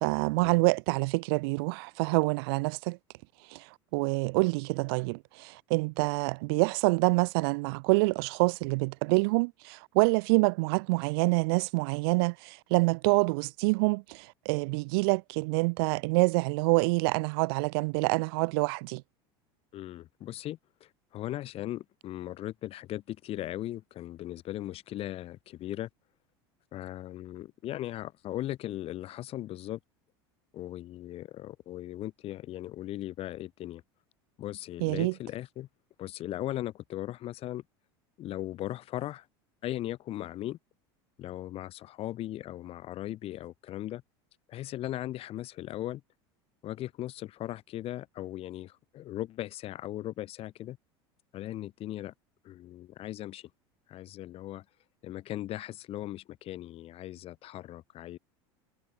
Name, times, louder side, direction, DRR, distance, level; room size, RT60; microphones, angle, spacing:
voice 1, 0.0-3.0 3.5-3.6 3.9-19.0 34.8-35.1, right 29 dB, 70° right, 0.4 m, -26 dB
voice 2, 19.7-25.9 26.7-29.8 30.5-33.8 34.4-35.7 36.0-37.6 38.2-39.3 39.6-40.6 41.2-44.0 44.5-46.0 46.6-50.8 51.3-52.1 52.4-53.5 53.9-54.6 55.0-58.2, left 14 dB, 45° left, 3.3 m, -38 dB
hypercardioid pair, 100°, 13 cm